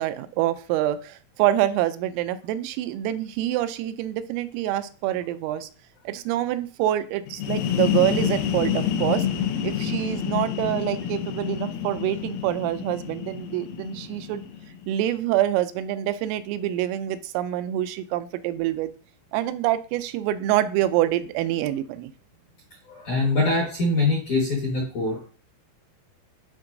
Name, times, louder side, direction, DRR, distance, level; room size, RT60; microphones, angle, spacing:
voice 1, 0.0-5.7 6.1-9.3 9.6-14.4 14.9-18.9 19.3-22.1, right 13 dB, 85° right, 11 dB, 3.1 m, -26 dB
sound 1, 7.3-14.9, left 8 dB, 85° left, 3.4 m, -28 dB
voice 2, 22.9-25.3, left 2 dB, 65° left, -2 dB, 2.0 m, -23 dB
11.5 x 4.4 x 2.6 m, 0.39 s
omnidirectional pair, 5.9 m